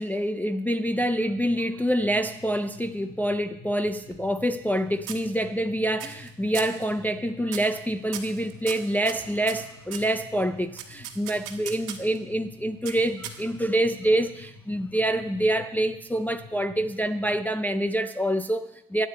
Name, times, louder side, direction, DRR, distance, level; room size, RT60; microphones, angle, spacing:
voice 1, 0.0-19.1, right 1 dB, 5° left, 8 dB, 0.4 m, -26 dB
sound 1, 0.9-17.5, left 4 dB, 75° left, 2.5 m, -49 dB
sound 2, 3.9-4.8 5.1-5.7 6.0-6.3 6.5-6.8 7.5-7.8 8.1-10.1 10.8-12.2 12.9-13.7, right 10 dB, 65° right, 1.5 m, -38 dB
23.0 x 8.8 x 4.3 m, 0.89 s
cardioid pair, 130°, 34 cm